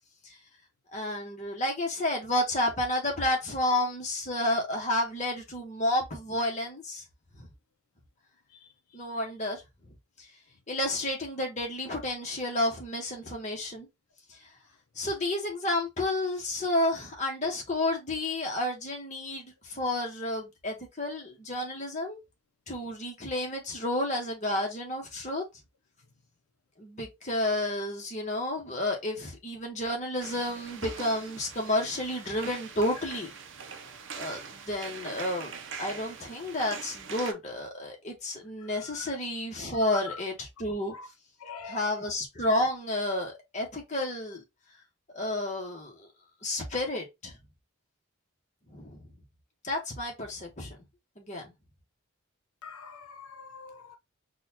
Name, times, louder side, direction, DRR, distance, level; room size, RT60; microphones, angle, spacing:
voice 1, 0.9-7.0 7.3-7.5 8.9-9.6 10.2-10.3 10.7-13.9 14.3-14.4 15.0-22.2 22.7-25.4 26.8-33.3 34.2-35.5 35.8-40.9 41.7-44.4 45.1-46.1 46.4-47.4 48.7-49.0 49.6-50.8 51.2-51.5, left 1 dB, 35° left, 1.1 m, -31 dB
sound 1, 30.2-37.3, right 6 dB, 55° right, 0.6 m, -43 dB
voice 2, 38.6-39.1 39.9-40.2 40.9-41.1 41.4-42.0 52.6-54.0, left 5 dB, 90° left, 0.5 m, -43 dB
4.0 x 2.3 x 2.8 m
head